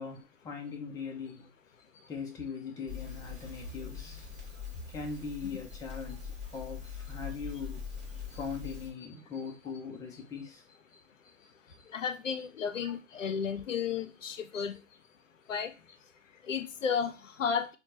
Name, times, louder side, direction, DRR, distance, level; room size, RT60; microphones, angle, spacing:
voice 1, 0.0-1.5 2.1-4.3 4.9-7.9 8.3-10.6 12.4-12.7 14.6-14.7 16.8-16.9, left 5 dB, 10° left, 0.5 m, -41 dB
Crackle, 2.9-8.9, left 6 dB, 20° right, 1.2 m, -43 dB
voice 2, 11.8-14.8 15.5-15.9 16.3-17.8, left 7 dB, 85° left, 0.6 m, -34 dB
4.4 x 2.2 x 2.8 m
figure-of-eight pair, 110°, 37 cm